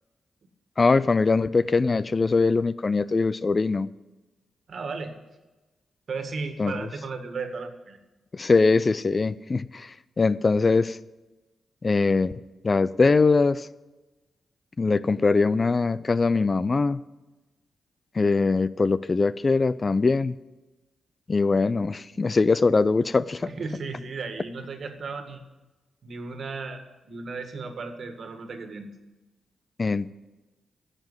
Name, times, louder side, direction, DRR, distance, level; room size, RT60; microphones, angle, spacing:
voice 1, 0.8-3.9 6.6-6.9 8.3-11.0 11.8-12.3 12.6-13.7 14.8-17.0 18.1-20.4 21.3-23.5 29.8-30.1, left 4 dB, 40° left, 17 dB, 0.4 m, -22 dB
voice 2, 4.7-5.1 6.1-8.0 23.5-25.4 26.0-28.9, right 4 dB, 65° right, 6 dB, 1.8 m, -35 dB
11.0 x 7.5 x 9.1 m, 1.1 s
supercardioid pair, 50°, 0 cm